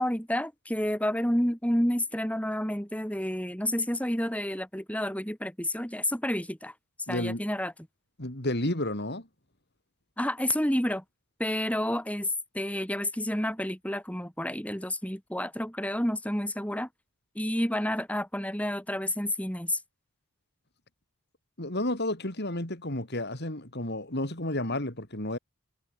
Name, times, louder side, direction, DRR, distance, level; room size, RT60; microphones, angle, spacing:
voice 1, 0.0-6.7 7.1-7.7 10.2-11.0 11.4-16.9 17.3-19.8, left 1 dB, 5° left, 4.9 m, -30 dB
voice 2, 7.1-7.4 8.2-9.3 21.6-25.4, left 1 dB, 50° left, 3.9 m, -31 dB
head